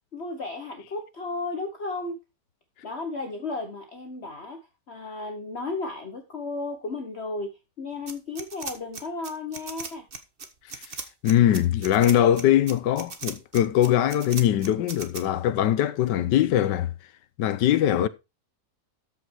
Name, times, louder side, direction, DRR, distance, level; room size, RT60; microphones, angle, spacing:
voice 1, 0.1-2.2 2.8-4.6 4.9-10.1, left 3 dB, 40° left, 1.4 m, -34 dB
sound 1, 8.1-15.2, right 4 dB, 35° right, 1.4 m, -37 dB
voice 2, 11.2-16.9 17.4-18.1, left 11 dB, 75° left, 1.4 m, -21 dB
13.5 x 5.9 x 4.6 m
omnidirectional pair, 1.9 m